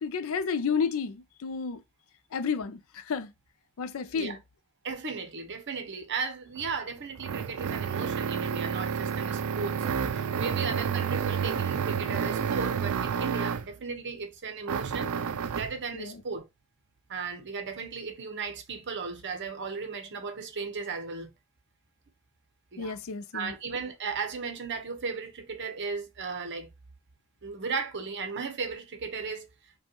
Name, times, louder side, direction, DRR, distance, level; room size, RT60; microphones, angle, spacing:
voice 1, 0.0-1.8 2.3-3.3 3.8-4.4 15.9-16.1 22.8-23.5, left 5 dB, 65° left, 0.5 m, -31 dB
voice 2, 4.8-15.1 15.5-16.4 17.1-21.3 22.7-23.0 23.3-26.7 27.4-29.5, right 5 dB, 55° right, 0.9 m, -36 dB
sound 1, 6.6-13.8 14.7-15.8, right 7 dB, 70° right, 0.4 m, -30 dB
5.2 x 2.3 x 2.9 m
head